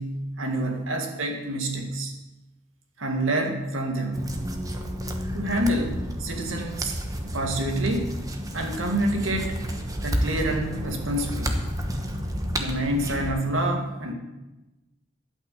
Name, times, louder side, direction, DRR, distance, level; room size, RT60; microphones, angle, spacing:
voice 1, 0.0-2.1 3.0-4.3 5.3-6.9 7.3-8.1 8.5-9.6 10.0-11.6 12.6-14.1, right 1 dB, 80° right, 3 dB, 2.0 m, -27 dB
sound 1, 4.1-13.3, equal, 20° right, 1.1 m, -31 dB
11.5 x 5.9 x 8.4 m, 1.0 s
head